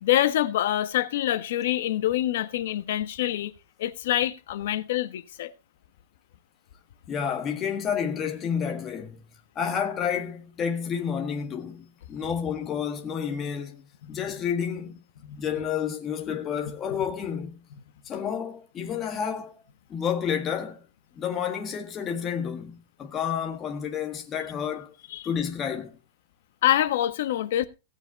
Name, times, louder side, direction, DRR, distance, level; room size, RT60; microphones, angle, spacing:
voice 1, 0.0-3.5 3.8-5.5 14.0-14.2 15.2-15.4 25.1-25.3 26.6-27.7, left 13 dB, 60° left, 1.2 m, -26 dB
voice 2, 7.1-9.2 9.5-15.0 15.4-17.6 18.0-19.5 19.9-20.8 21.1-24.9 25.2-25.9, left 7 dB, 15° left, 1.6 m, -30 dB
17.0 x 8.1 x 4.1 m
supercardioid pair, 175°, 0 cm